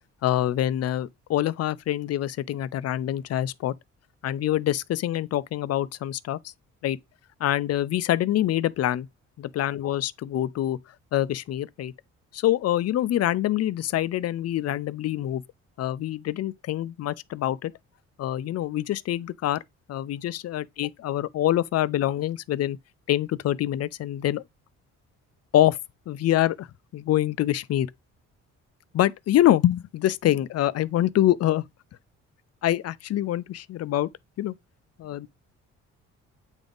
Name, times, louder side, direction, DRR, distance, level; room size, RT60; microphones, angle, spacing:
voice 1, 0.2-3.7 4.2-6.4 6.8-7.0 7.4-9.1 9.4-10.8 11.1-11.9 12.3-15.4 15.8-17.7 18.2-19.6 19.9-22.8 23.1-24.4 25.5-25.8 26.1-26.7 26.9-27.9 28.9-31.6 32.6-34.1 34.4-34.5 35.0-35.3, left 13 dB, 55° left, 0.5 m, -25 dB
8.0 x 3.6 x 3.9 m
cardioid pair, 90°, 30 cm